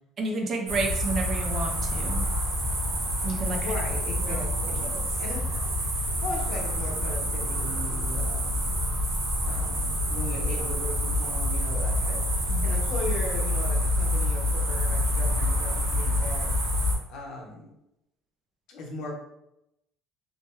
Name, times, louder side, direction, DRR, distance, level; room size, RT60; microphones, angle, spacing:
voice 1, 0.2-2.3 3.2-3.7 4.2-4.4 4.8-5.0 12.5-12.7, right 3 dB, 30° right, 2 dB, 0.4 m, -31 dB
sound 1, 0.7-17.0, left 1 dB, 65° right, 1.2 m, -27 dB
voice 2, 3.4-8.6 9.4-16.5 17.1-17.7 18.7-19.2, left 2 dB, 55° left, 0 dB, 0.7 m, -38 dB
3.1 x 2.1 x 3.0 m, 0.84 s
cardioid pair, 165°, 0 cm